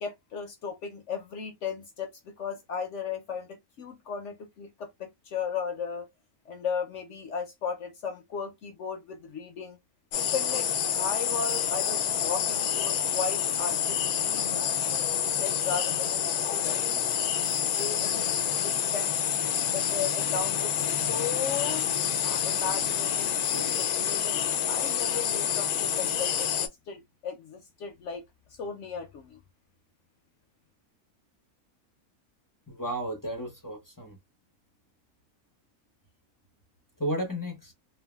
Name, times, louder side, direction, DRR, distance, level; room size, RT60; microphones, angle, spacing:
voice 1, 0.0-6.1 6.5-9.8 10.1-14.9 15.4-17.1 17.7-18.3 18.6-19.3 19.7-21.8 22.2-24.4 24.7-28.2 28.6-29.4, left 6 dB, 65° left, 0.8 m, -36 dB
sound 1, 10.1-26.7, left 9 dB, 90° left, 1.1 m, -28 dB
voice 2, 32.7-34.2 37.0-37.7, equal, 25° left, 0.5 m, -33 dB
3.3 x 2.2 x 2.2 m
omnidirectional pair, 1.5 m